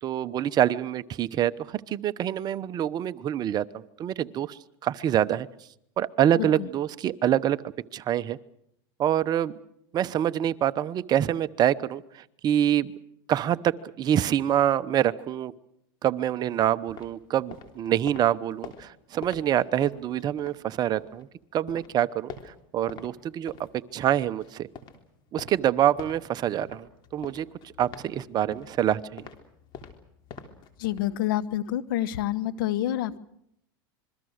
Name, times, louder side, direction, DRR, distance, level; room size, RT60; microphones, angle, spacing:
voice 1, 0.0-3.6 4.0-5.5 6.0-8.4 9.0-9.5 9.9-12.9 13.3-15.5 16.0-21.3 21.5-23.5 23.9-24.7 25.3-26.9 27.1-27.5 27.8-29.3, right 11 dB, 35° right, 14 dB, 0.9 m, -26 dB
sound 1, 16.9-21.3 21.6-23.1 23.4-31.1, left 6 dB, 45° left, 3.5 m, -46 dB
voice 2, 30.8-33.2, left 13 dB, 75° left, 21 dB, 1.2 m, -28 dB
27.0 x 22.5 x 6.5 m, 0.75 s
supercardioid pair, 115°, 11 cm